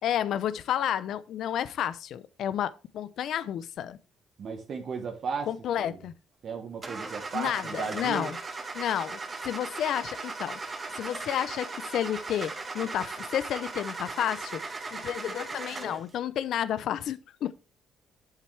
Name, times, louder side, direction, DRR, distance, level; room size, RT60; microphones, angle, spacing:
voice 1, 0.0-4.0 5.5-6.1 7.3-8.4 8.7-14.6 14.9-17.5, left 10 dB, 70° left, 0.6 m, -31 dB
voice 2, 4.4-5.5 5.8-6.0 6.4-8.3, right 5 dB, 50° right, 1.3 m, -35 dB
Car / Engine starting, 6.8-16.1, right 3 dB, 30° right, 1.5 m, -38 dB
8.4 x 7.4 x 3.4 m
cardioid pair, 100°, 0 cm